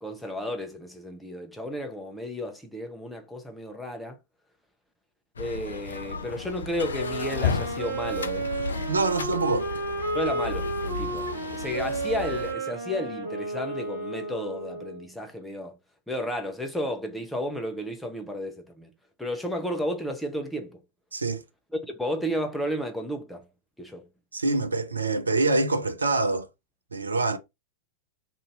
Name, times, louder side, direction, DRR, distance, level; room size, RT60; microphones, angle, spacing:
voice 1, 0.0-4.2 5.4-8.5 10.1-15.8 16.1-18.9 19.2-20.8 21.7-23.5 23.8-24.1, equal, 5° left, 0.6 m, -33 dB
sound 1, 5.4-12.5, left 5 dB, 70° left, 0.3 m, -33 dB
Wind instrument woodwind instrument, 6.8-15.1, right 2 dB, 55° right, 1.4 m, -32 dB
voice 2, 8.9-9.7 21.1-21.4 24.3-26.5 26.9-27.4, right 3 dB, 75° right, 0.4 m, -25 dB
2.6 x 2.6 x 3.7 m
figure-of-eight pair, 90°, 0 cm